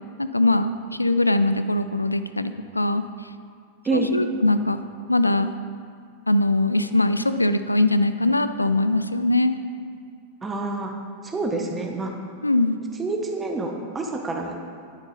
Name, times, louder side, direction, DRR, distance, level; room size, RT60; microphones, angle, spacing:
voice 1, 0.2-3.0 3.9-4.8 5.1-5.5 6.3-9.5 12.4-12.8, left 2 dB, 85° left, 12 dB, 0.4 m, -21 dB
voice 2, 10.4-10.9 11.2-12.1 13.0-14.5, right 2 dB, 15° right, 2 dB, 1.0 m, -27 dB
10.5 x 9.4 x 4.1 m, 2.2 s
figure-of-eight pair, 90°, 0 cm